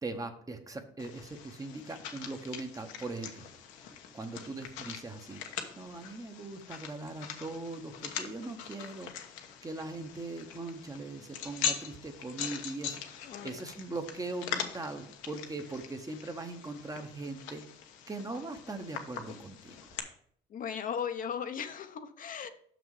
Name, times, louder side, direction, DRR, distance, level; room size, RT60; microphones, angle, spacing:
voice 1, 0.0-3.5 4.1-5.4 5.8-9.1 9.6-13.0 13.4-17.6 18.1-19.8, right 2 dB, 20° right, 7 dB, 0.9 m, -40 dB
sound 1, 1.0-20.0, left 8 dB, 85° left, 1.1 m, -42 dB
voice 2, 13.2-13.7 20.5-22.5, left 7 dB, 45° left, 8 dB, 0.7 m, -37 dB
6.2 x 6.1 x 4.8 m, 0.62 s
cardioid pair, 105°, 19 cm